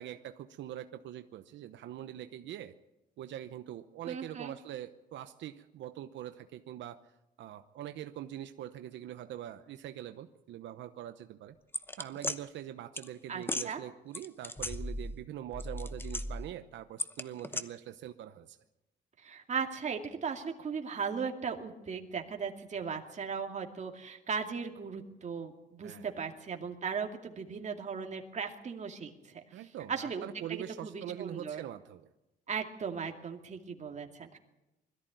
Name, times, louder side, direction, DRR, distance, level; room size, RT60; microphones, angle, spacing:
voice 1, 0.0-2.7 3.2-7.0 7.4-11.6 12.0-18.6 25.8-26.3 29.5-32.1, right 11 dB, 85° right, 9 dB, 0.9 m, -43 dB
voice 2, 4.1-4.5 13.3-13.8 19.2-29.4 29.9-31.6 32.5-34.4, right 6 dB, 40° right, 3 dB, 2.4 m, -37 dB
sound 1, 11.7-12.4 13.0-13.1 13.4-13.7 14.1-15.2 15.5-16.5 17.0-17.6, left 1 dB, 10° left, 0.9 m, -36 dB
21.5 x 14.0 x 9.1 m, 0.95 s
cardioid pair, 125°, 19 cm